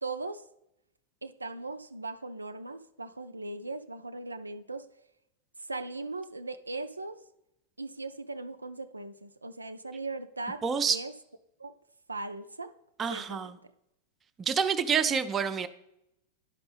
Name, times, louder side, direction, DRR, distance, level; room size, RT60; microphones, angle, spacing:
voice 1, 0.0-0.4 1.2-4.9 5.6-7.2 7.8-11.1 11.6-11.7 12.1-12.7 13.1-13.5, right 3 dB, 80° right, 10 dB, 0.3 m, -39 dB
voice 2, 10.6-11.0 13.0-13.5 14.4-15.7, right 6 dB, 20° right, 9 dB, 0.5 m, -28 dB
11.5 x 5.1 x 3.3 m, 0.83 s
figure-of-eight pair, 90°, 0 cm